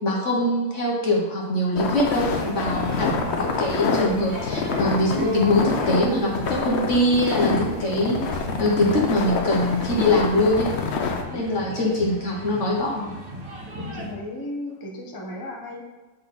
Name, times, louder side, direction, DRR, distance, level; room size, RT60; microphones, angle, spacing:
voice 1, 0.0-10.8 11.3-13.0, left 1 dB, 45° left, -2 dB, 1.2 m, -23 dB
sound 1, 1.8-11.2, left 4 dB, 80° left, 0.6 m, -27 dB
sound 2, 2.1-14.1, equal, 50° right, 1.5 m, -38 dB
voice 2, 11.5-12.0 13.8-15.8, left 1 dB, 20° left, -1 dB, 0.6 m, -35 dB
7.7 x 4.2 x 4.1 m, 1.2 s
omnidirectional pair, 2.0 m